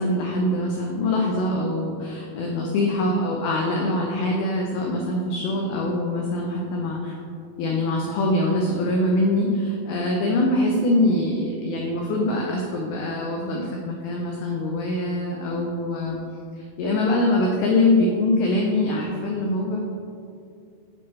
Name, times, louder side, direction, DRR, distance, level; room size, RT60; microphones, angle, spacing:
voice 1, 0.0-7.1 7.6-16.2 16.6-19.8, left 1 dB, 85° left, -1 dB, 2.1 m, -23 dB
8.1 x 4.3 x 3.1 m, 2.4 s
omnidirectional pair, 5.0 m